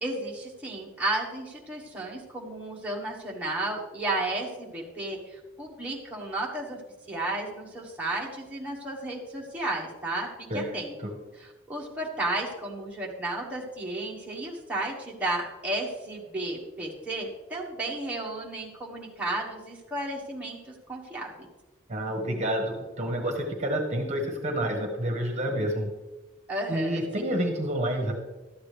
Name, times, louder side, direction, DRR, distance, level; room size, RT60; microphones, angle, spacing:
voice 1, 0.0-6.8 7.1-10.3 10.5-10.9 11.4-20.6 20.9-21.5 26.5-27.4, right 2 dB, 5° right, -4 dB, 1.4 m, -33 dB
voice 2, 10.5-11.1 21.9-25.9 26.7-28.1, right 1 dB, 35° right, 3 dB, 1.3 m, -29 dB
13.0 x 8.6 x 3.3 m, 1.2 s
head